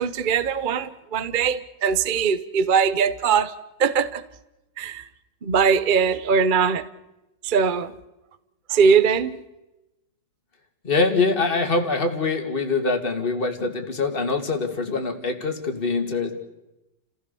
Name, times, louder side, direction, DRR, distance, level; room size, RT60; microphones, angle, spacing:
voice 1, 0.0-3.5 3.8-4.2 4.8-5.1 5.4-6.8 7.4-7.9 8.7-9.4, right 6 dB, 50° right, 0.6 m, -21 dB
voice 2, 10.8-16.3, left 3 dB, 30° left, 2.4 m, -24 dB
30.0 x 16.0 x 6.9 m
omnidirectional pair, 2.0 m